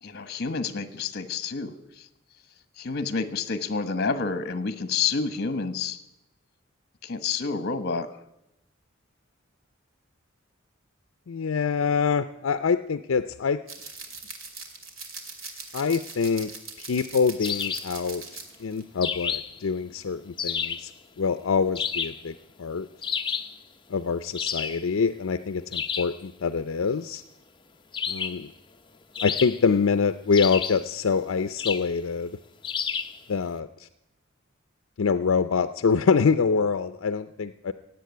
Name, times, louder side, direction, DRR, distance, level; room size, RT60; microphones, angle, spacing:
voice 1, 0.0-2.1 2.8-6.0 7.0-8.1, left 5 dB, 50° left, 11 dB, 1.2 m, -29 dB
voice 2, 11.3-13.6 15.7-16.5 16.8-20.9 21.2-22.9 23.9-27.2 28.1-28.5 29.2-32.3 33.3-33.9 35.0-37.7, left 5 dB, 75° left, 11 dB, 0.5 m, -25 dB
sound 1, 13.7-18.8 19.1-19.4, right 4 dB, 70° right, 2.5 m, -41 dB
sound 2, 17.4-18.0 19.0-19.6 20.4-20.9 21.7-22.3 23.0-23.6 24.3-24.9 25.7-26.2 27.9-28.5 29.1-29.8 30.3-30.9 31.6-31.9 32.6-33.2, left 7 dB, 25° left, 0.8 m, -30 dB
17.0 x 8.1 x 9.4 m, 0.87 s
head